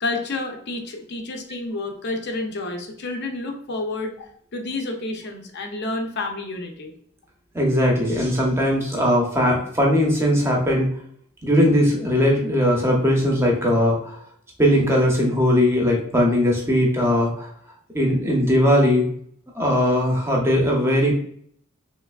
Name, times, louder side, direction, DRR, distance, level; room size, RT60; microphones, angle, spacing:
voice 1, 0.0-6.9, left 2 dB, 50° left, 3 dB, 0.6 m, -30 dB
voice 2, 7.5-10.9 11.4-14.2 14.6-17.5 17.9-19.1 19.5-21.1, equal, 10° right, -2 dB, 0.7 m, -19 dB
3.3 x 3.2 x 2.3 m, 0.63 s
head